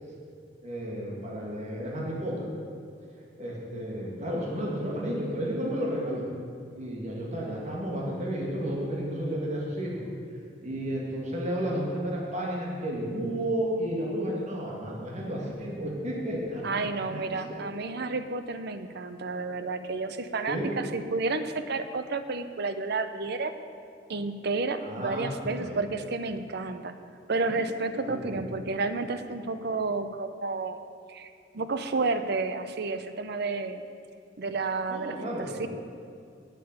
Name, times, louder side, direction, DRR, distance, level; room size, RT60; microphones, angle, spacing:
voice 1, 0.6-2.5 3.4-6.3 6.7-10.0 10.6-16.8 17.1-17.2 17.5-17.7 20.5-20.7 24.8-25.8 28.0-28.4 34.9-35.7, equal, 40° right, -3 dB, 2.1 m, -32 dB
voice 2, 16.6-23.5 24.1-26.9 27.3-30.8 31.1-33.8 34.4-35.7, right 3 dB, 60° right, 10 dB, 0.7 m, -31 dB
9.1 x 7.9 x 8.1 m, 2.4 s
head